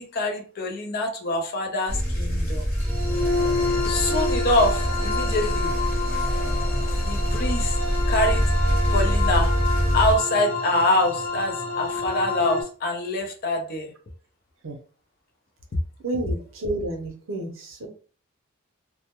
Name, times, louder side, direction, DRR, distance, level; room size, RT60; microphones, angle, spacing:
voice 1, 0.0-2.7 3.5-5.7 7.0-7.8 8.1-8.5 8.9-9.5 9.9-13.9, left 1 dB, 45° left, 4 dB, 0.5 m, -25 dB
sound 1, 1.9-10.1, equal, 10° left, 0.8 m, -24 dB
sound 2, 2.8-12.6, left 3 dB, 80° left, 1.0 m, -29 dB
voice 2, 16.0-17.9, right 1 dB, 70° right, 3 dB, 0.6 m, -30 dB
2.2 x 2.0 x 2.8 m, 0.39 s
head